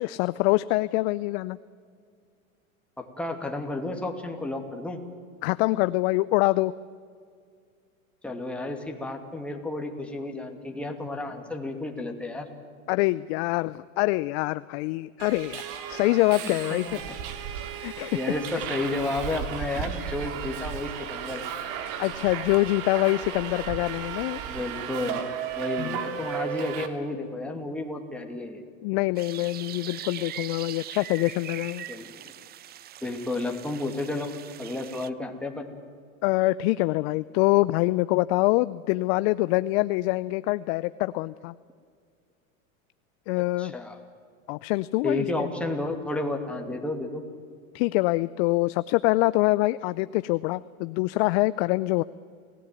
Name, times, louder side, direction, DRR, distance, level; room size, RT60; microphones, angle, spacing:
voice 1, 0.0-1.6 5.4-6.7 12.9-16.9 17.8-18.2 22.0-24.4 25.8-26.2 28.8-31.9 36.2-41.5 43.3-43.7 44.5-45.3 47.7-52.0, left 20 dB, 50° left, 16 dB, 0.6 m, -25 dB
voice 2, 3.0-5.0 8.2-12.5 15.9-16.0 16.4-17.0 18.1-21.4 24.5-28.6 31.9-32.1 33.0-34.3 34.6-35.7 43.6-44.0 45.0-47.2, left 2 dB, 5° left, 2 dB, 2.6 m, -32 dB
Subway metro underground, 15.2-26.9, right 9 dB, 50° right, 2.4 m, -34 dB
sound 1, 29.2-35.1, right 12 dB, 25° right, 0.5 m, -41 dB
28.5 x 17.0 x 9.2 m, 2.2 s
hypercardioid pair, 110°, 41 cm